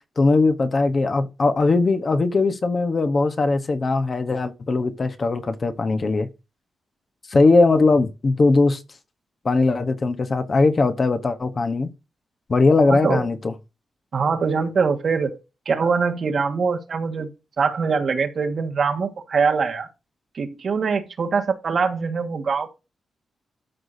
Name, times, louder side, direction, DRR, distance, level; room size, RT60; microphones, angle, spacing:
voice 1, 0.2-6.3 7.3-8.8 9.4-11.9 12.5-13.5, left 3 dB, 35° left, 1.0 m, -19 dB
voice 2, 12.9-13.2 14.1-15.4 15.6-17.3 17.6-19.9 20.3-22.7, right 5 dB, 50° right, 1.6 m, -23 dB
13.0 x 6.0 x 2.7 m
wide cardioid pair, 150°, 0 cm